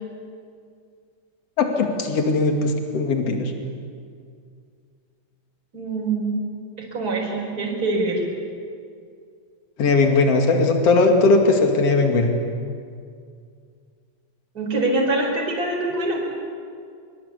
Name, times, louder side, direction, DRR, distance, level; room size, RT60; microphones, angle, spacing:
voice 1, 1.6-3.5 9.8-12.3, left 3 dB, 50° left, 3 dB, 3.3 m, -19 dB
voice 2, 5.7-6.4 6.8-8.3 14.5-16.3, right 2 dB, 25° right, -1 dB, 5.0 m, -24 dB
24.0 x 24.0 x 8.4 m, 2.3 s
omnidirectional pair, 3.8 m